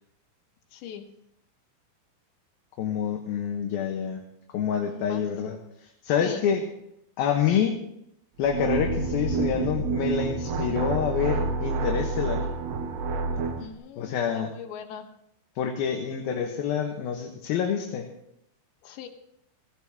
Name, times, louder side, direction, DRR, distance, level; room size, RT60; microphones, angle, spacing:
voice 1, 0.7-1.1 4.8-5.2 6.2-6.4 13.6-15.1 18.8-19.1, left 8 dB, 85° left, 4 dB, 3.6 m, -40 dB
voice 2, 2.8-4.2 4.5-5.6 6.0-6.6 7.2-7.8 8.4-12.5 14.0-14.5 15.6-18.1, left 8 dB, 65° left, 2 dB, 2.8 m, -27 dB
sound 1, 8.4-13.7, right 4 dB, 75° right, 3.4 m, -28 dB
17.0 x 17.0 x 3.6 m, 0.77 s
omnidirectional pair, 5.0 m